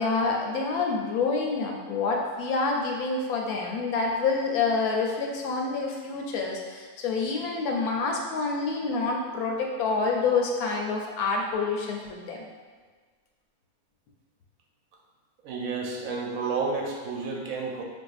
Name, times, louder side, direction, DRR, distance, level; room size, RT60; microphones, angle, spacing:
voice 1, 0.0-12.4, left 4 dB, 80° left, 0 dB, 1.0 m, -27 dB
voice 2, 15.4-17.8, right 4 dB, 75° right, -2 dB, 0.9 m, -31 dB
4.1 x 2.5 x 2.3 m, 1.5 s
omnidirectional pair, 1.5 m